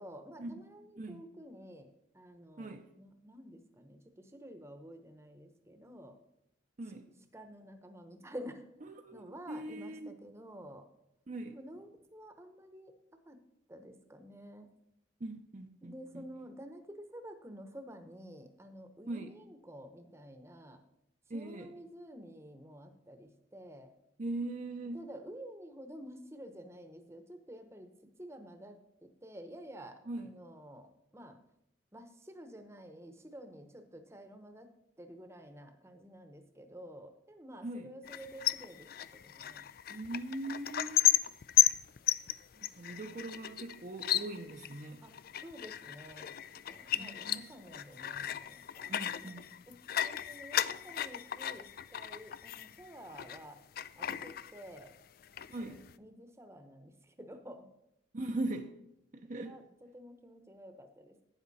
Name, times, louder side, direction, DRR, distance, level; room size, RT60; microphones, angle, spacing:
voice 1, 0.0-1.9 2.1-6.2 7.3-8.6 9.1-10.8 11.5-12.9 13.3-13.4 13.7-14.7 15.8-20.8 21.3-23.9 24.9-27.9 28.2-30.9 31.1-31.4 31.9-34.7 35.0-39.6 45.0-45.1 45.4-46.3 46.7-48.9 49.2-53.6 54.0-54.9 55.6-56.9 57.2-57.7 59.4-59.6 59.9-61.1, equal, 15° right, 7 dB, 0.9 m, -50 dB
voice 2, 8.8-10.2 11.3-11.5 15.2-16.3 19.1-19.3 21.3-21.8 24.2-25.1 30.0-30.3 37.6-37.9 39.9-41.1 42.6-45.0 47.0-47.5 48.9-49.5 55.5-55.8 58.1-58.7 59.1-59.6, right 2 dB, 40° right, 5 dB, 0.6 m, -40 dB
sound 1, 38.0-53.4 53.8-55.0 55.2-55.9, left 13 dB, 50° left, 0.4 m, -34 dB
12.0 x 9.2 x 4.1 m, 0.81 s
head